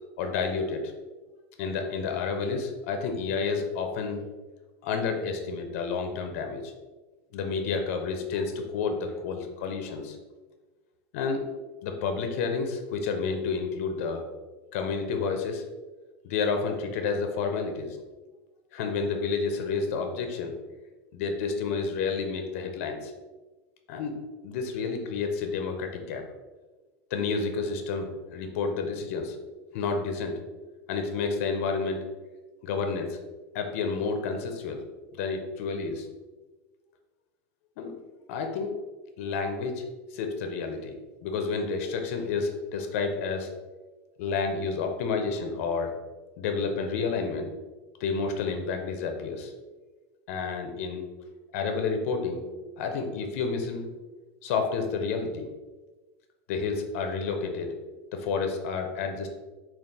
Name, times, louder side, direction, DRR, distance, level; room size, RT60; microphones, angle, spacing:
voice 1, 0.2-0.9 1.6-4.2 4.8-6.7 7.3-10.2 11.1-11.5 11.8-14.2 14.7-15.6 16.2-18.0 18.7-20.5 21.1-23.1 23.9-24.1 24.4-26.3 27.1-29.4 29.7-30.4 30.9-32.0 32.6-33.2 33.5-34.8 35.2-36.1 37.8-37.9 38.3-38.8 39.2-39.8 40.1-40.9 41.2-43.5 44.2-45.9 46.4-47.5 48.0-49.5 50.3-51.0 51.5-52.4 52.8-53.9 54.4-55.5 56.5-57.8 58.1-59.3, left 5 dB, 70° left, 5 dB, 0.5 m, -30 dB
3.9 x 2.4 x 3.5 m, 1.2 s
supercardioid pair, 155°, 8 cm